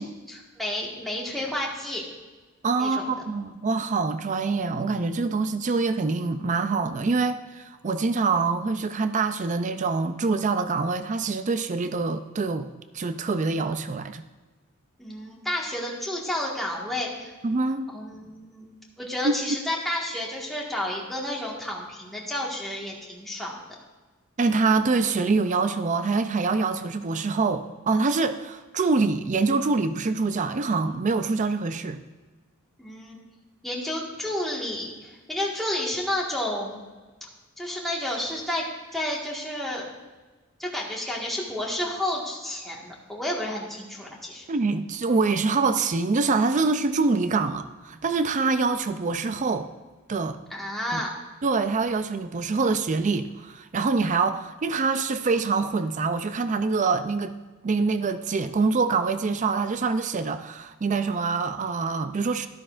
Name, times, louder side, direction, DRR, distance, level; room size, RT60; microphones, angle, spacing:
voice 1, 0.0-2.0 2.8-3.1 15.0-17.3 17.9-18.7 19.0-23.6 32.8-33.2 33.6-36.8 37.6-38.6 38.9-39.8 40.6-44.5 50.5-51.1, left 1 dB, ahead, -4 dB, 1.7 m, -31 dB
voice 2, 2.6-12.7 12.9-14.2 17.4-17.9 19.2-19.3 24.4-32.0 44.5-49.7 50.1-50.4 50.9-51.0 51.4-57.4 57.6-62.5, right 4 dB, 35° right, 10 dB, 0.4 m, -25 dB
13.0 x 12.5 x 2.5 m, 1.3 s
head